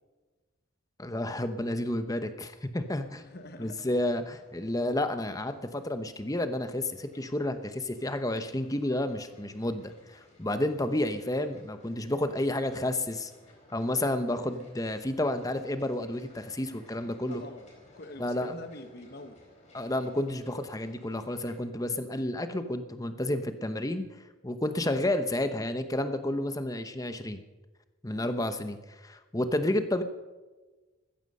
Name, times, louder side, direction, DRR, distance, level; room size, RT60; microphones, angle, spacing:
voice 1, 1.0-3.2 3.6-13.3 13.7-17.4 18.2-18.5 19.7-24.1 24.4-27.4 28.0-28.8 29.0-30.0, left 1 dB, 15° left, 9 dB, 0.9 m, -31 dB
sound 1, 2.8-21.6, left 1 dB, 35° left, 4.4 m, -59 dB
voice 2, 3.0-3.9 17.3-17.6 17.9-19.4, left 1 dB, 50° left, 8 dB, 1.2 m, -45 dB
15.0 x 14.0 x 5.5 m, 1.2 s
head